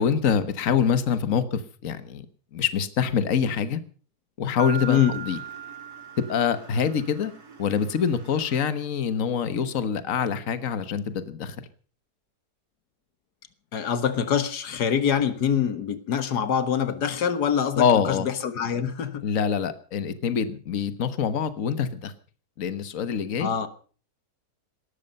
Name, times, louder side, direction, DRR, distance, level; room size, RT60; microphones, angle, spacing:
voice 1, 0.0-2.2 2.5-3.8 4.4-5.0 5.2-5.4 6.3-7.3 7.6-11.6 17.8-18.2 19.2-22.1 22.6-23.5, left 7 dB, 60° left, 1.6 m, -25 dB
Mallet percussion, 4.6-7.1, right 8 dB, 50° right, 1.1 m, -38 dB
sound 1, 4.6-9.0, right 4 dB, 80° right, 3.8 m, -50 dB
voice 2, 4.9-5.2 13.7-19.3 23.4-23.7, left 8 dB, 85° left, 1.9 m, -25 dB
18.5 x 13.5 x 5.4 m
omnidirectional pair, 1.7 m